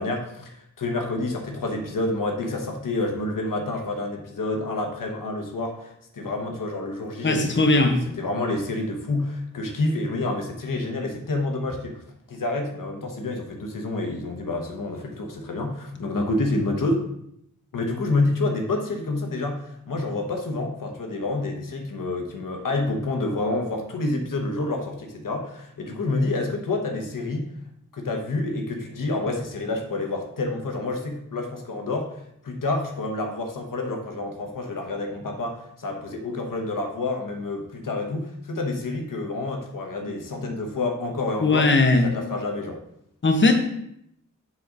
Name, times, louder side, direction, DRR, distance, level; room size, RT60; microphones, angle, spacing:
voice 1, 0.0-12.0 12.3-17.1 17.7-27.5 27.9-32.2 32.4-41.7 42.0-42.8, left 2 dB, 90° left, 3 dB, 1.1 m, -28 dB
voice 2, 7.2-8.0 41.4-42.1 43.2-43.6, left 2 dB, 35° left, 5 dB, 0.8 m, -18 dB
7.6 x 3.8 x 5.3 m, 0.76 s
wide cardioid pair, 95°, 32 cm